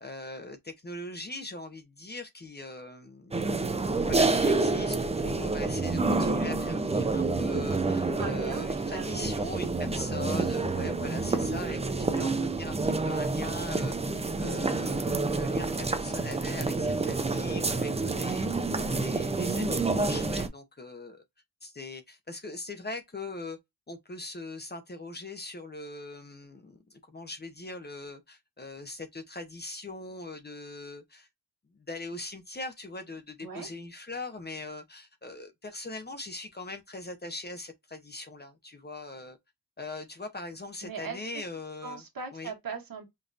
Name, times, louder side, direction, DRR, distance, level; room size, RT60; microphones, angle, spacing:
voice 1, 0.0-12.3 12.6-18.5 18.9-21.2 21.6-23.6 23.9-31.3 31.9-39.4 39.8-42.0 42.3-42.5, left 2 dB, 25° left, 0.7 m, -41 dB
sound 1, 3.3-20.5, right 3 dB, 15° right, 0.4 m, -28 dB
voice 2, 8.2-9.3 33.4-33.7 40.8-41.2 41.8-43.1, right 5 dB, 60° right, 1.4 m, -39 dB
5.3 x 2.6 x 2.5 m
wide cardioid pair, 150°, 38 cm